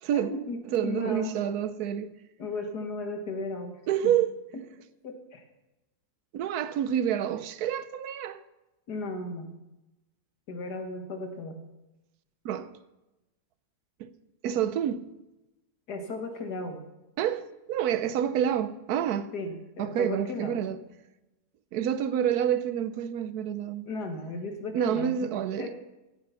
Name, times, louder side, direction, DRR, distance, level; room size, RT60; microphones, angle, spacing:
voice 1, 0.1-1.4 2.4-4.1 5.0-5.4 8.9-9.5 10.5-11.6 15.9-16.8 19.3-20.5 23.9-25.3 25.6-25.7, left 2 dB, 90° left, 2.1 m, -35 dB
voice 2, 0.7-2.1 3.9-4.3 6.3-8.4 12.4-12.7 14.0-14.1 14.4-15.1 17.2-19.3 19.8-20.8 21.7-23.9 24.7-25.7, right 9 dB, 80° right, 1.2 m, -28 dB
16.5 x 8.6 x 5.6 m
omnidirectional pair, 1.7 m